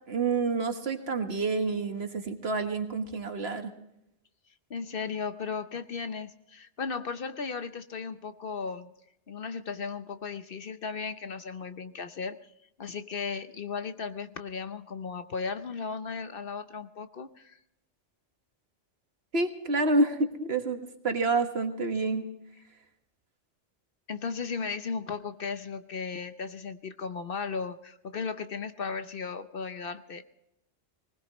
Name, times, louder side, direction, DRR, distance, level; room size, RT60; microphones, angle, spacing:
voice 1, 0.1-3.7 19.3-20.8 21.0-22.2, right 3 dB, 60° right, 6 dB, 1.7 m, -28 dB
voice 2, 4.7-8.9 9.3-12.5 12.8-17.6 24.1-30.2, left 5 dB, 55° left, 10 dB, 0.9 m, -36 dB
20.0 x 19.5 x 3.1 m, 0.83 s
omnidirectional pair, 1.2 m